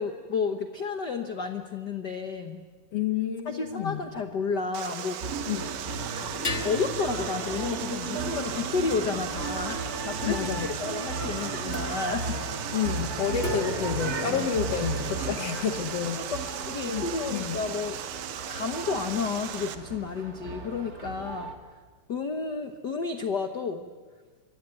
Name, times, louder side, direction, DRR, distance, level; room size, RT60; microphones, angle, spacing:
voice 1, 0.0-2.6 3.4-5.5 6.3-12.5 14.3-14.5 15.4-15.5 16.1-18.0 18.5-21.5 22.1-23.9, left 5 dB, 85° left, 7 dB, 0.9 m, -31 dB
voice 2, 2.9-4.0 5.5-5.7 10.2-10.7 12.7-16.3 16.9-17.0 17.3-17.6, left 8 dB, 55° left, 7 dB, 2.3 m, -29 dB
sound 1, 3.6-4.8 6.4-10.2 11.6-11.8 13.4-15.0, left 2 dB, 30° left, 1.2 m, -38 dB
Water, 4.7-19.8, right 10 dB, 80° right, 2.8 m, -37 dB
sound 2, 5.2-21.6, right 3 dB, 30° right, 2.1 m, -35 dB
26.5 x 23.5 x 9.2 m, 1.4 s
omnidirectional pair, 3.8 m